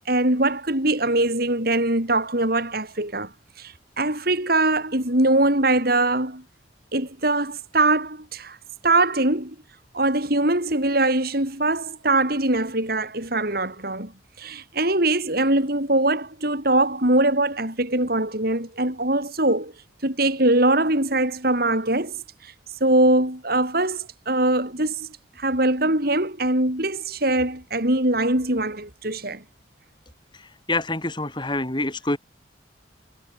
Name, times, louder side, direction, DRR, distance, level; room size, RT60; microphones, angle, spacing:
voice 1, 0.1-3.3 3.6-6.4 6.9-8.6 8.8-9.5 9.9-14.1 14.4-19.7 20.0-22.1 22.8-25.1 25.4-29.4, right 2 dB, 55° right, 5.9 m, -22 dB
voice 2, 30.3-32.2, left 2 dB, 25° left, 3.5 m, -27 dB
head